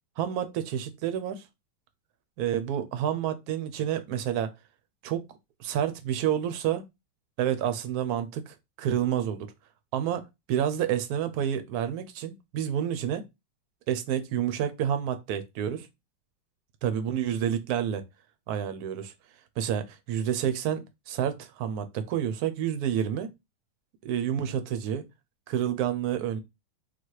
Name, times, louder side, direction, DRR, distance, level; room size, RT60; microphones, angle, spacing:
voice 1, 0.2-1.4 2.4-4.5 5.0-5.2 5.6-6.8 7.4-9.5 9.9-13.2 13.9-15.9 16.8-18.0 18.5-19.1 19.6-20.8 21.1-23.3 24.0-25.1 25.5-26.4, right 9 dB, 70° right, 0.9 m, -29 dB
4.0 x 2.3 x 4.6 m
omnidirectional pair, 2.3 m